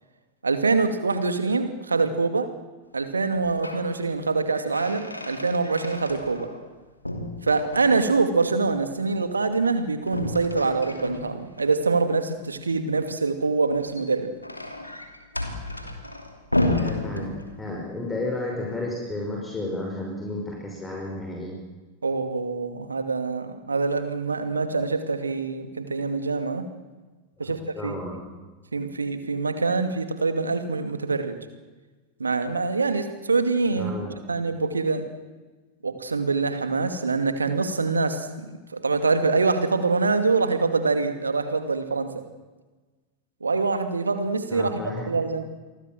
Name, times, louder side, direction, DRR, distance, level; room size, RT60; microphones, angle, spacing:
voice 1, 0.4-2.5 2.9-6.5 7.4-14.3 22.0-26.6 27.4-27.9 28.7-31.4 32.2-33.9 34.3-35.1 35.8-42.2 43.4-44.8 45.1-45.5, right 4 dB, 75° right, 9 dB, 2.5 m, -25 dB
sound 1, 3.3-3.9 4.3-6.7 7.0-8.2 10.0-11.7 13.7-17.8, left 1 dB, 85° left, 2.9 m, -32 dB
voice 2, 16.7-21.5 27.4-28.3 33.8-34.2 44.5-45.2, left 2 dB, 10° left, -1 dB, 5.8 m, -32 dB
29.0 x 23.0 x 7.6 m, 1.3 s
figure-of-eight pair, 90°, 0 cm